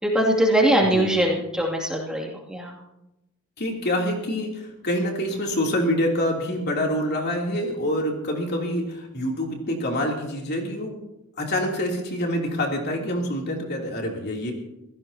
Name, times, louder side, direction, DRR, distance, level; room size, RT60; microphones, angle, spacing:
voice 1, 0.0-2.8, right 1 dB, 5° right, -2 dB, 2.5 m, -22 dB
voice 2, 3.6-10.9 11.4-14.5, left 1 dB, 50° left, 0 dB, 3.1 m, -26 dB
27.0 x 17.0 x 2.9 m, 0.91 s
head